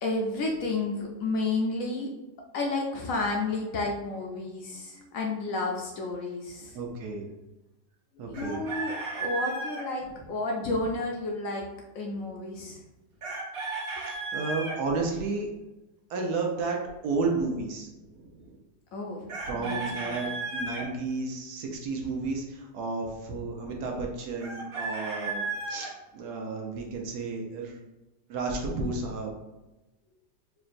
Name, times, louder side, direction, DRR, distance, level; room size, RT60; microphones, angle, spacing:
voice 1, 0.0-2.1 2.5-6.8 8.2-12.8 14.0-14.1 18.9-19.8 20.0-20.1, left 2 dB, 65° left, 0 dB, 0.9 m, -31 dB
voice 2, 6.7-7.2 8.2-8.6 14.0-15.5 16.1-18.6 19.5-27.8 28.3-29.3, right 3 dB, 70° right, 1 dB, 1.2 m, -32 dB
Chicken rooster, 8.3-9.8 13.2-14.8 19.3-20.8 24.4-25.9, right 3 dB, 40° right, 0.9 m, -34 dB
4.5 x 3.0 x 2.5 m, 1.0 s
omnidirectional pair, 1.8 m